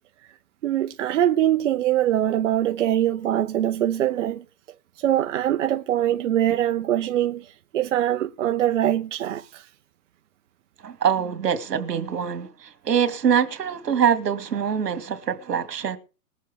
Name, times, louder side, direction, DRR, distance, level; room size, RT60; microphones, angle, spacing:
voice 1, 0.6-4.4 5.0-9.7, right 12 dB, 50° right, 0.8 m, -23 dB
voice 2, 10.8-16.0, right 8 dB, 80° right, 2.3 m, -24 dB
21.0 x 7.5 x 3.6 m
hypercardioid pair, 155°, 47 cm